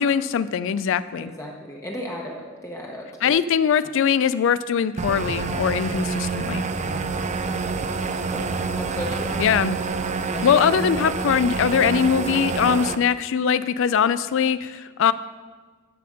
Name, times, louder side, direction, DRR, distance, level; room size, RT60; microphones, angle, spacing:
voice 1, 0.0-1.3 3.2-6.6 9.4-9.8 10.4-15.1, left 7 dB, 65° left, 15 dB, 0.4 m, -21 dB
voice 2, 1.2-3.3 6.7-7.9 8.3-9.4 10.3-10.8, equal, 15° left, -2 dB, 0.9 m, -36 dB
sound 1, 5.0-13.0, right 4 dB, 35° right, 0.5 m, -27 dB
11.5 x 4.3 x 6.4 m, 1.4 s
head